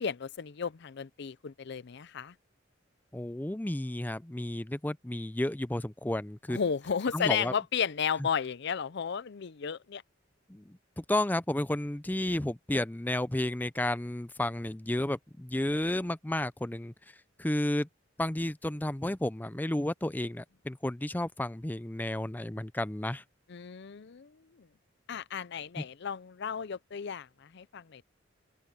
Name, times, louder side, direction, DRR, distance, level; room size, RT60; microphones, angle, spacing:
voice 1, 0.0-2.3 6.5-10.0 23.5-24.3 25.1-28.0, left 7 dB, 60° left, 0.5 m, -33 dB
voice 2, 3.1-6.6 7.1-7.5 8.2-8.3 10.5-16.9 17.4-17.9 18.2-23.2 25.8-25.9, left 1 dB, 10° left, 0.5 m, -32 dB
open air
head